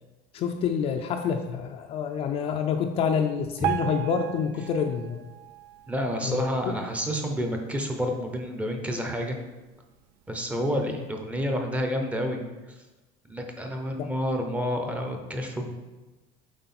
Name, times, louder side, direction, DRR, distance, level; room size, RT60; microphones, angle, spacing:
voice 1, 0.3-5.3 6.2-6.7 10.9-11.0 14.0-14.1, left 6 dB, 35° left, 4 dB, 0.4 m, -28 dB
Piano, 3.6-6.7 7.2-7.4 7.7-7.8 8.5-8.6 9.2-9.3, right 13 dB, 85° right, 0.5 m, -35 dB
voice 2, 5.9-9.4 10.3-12.4 13.3-15.8, equal, 10° right, 3 dB, 0.6 m, -29 dB
7.8 x 5.1 x 4.2 m, 1.2 s
cardioid pair, 175°, 17 cm